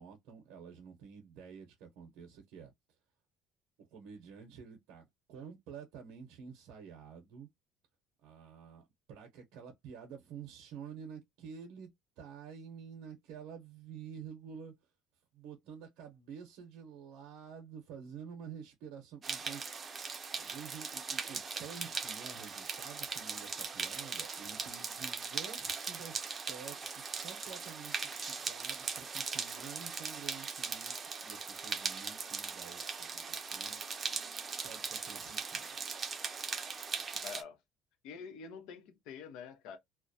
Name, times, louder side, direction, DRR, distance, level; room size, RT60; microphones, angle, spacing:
voice 1, 0.0-2.7 3.8-7.5 8.2-14.7 15.3-19.9 20.3-33.8 34.5-35.8, right 7 dB, 85° right, 0.7 m, -50 dB
sound 1, 19.2-37.4, right 5 dB, 30° right, 0.5 m, -39 dB
voice 2, 37.2-37.6 38.0-39.8, left 6 dB, 80° left, 0.6 m, -46 dB
2.3 x 2.1 x 2.6 m
cardioid pair, 130°, 0 cm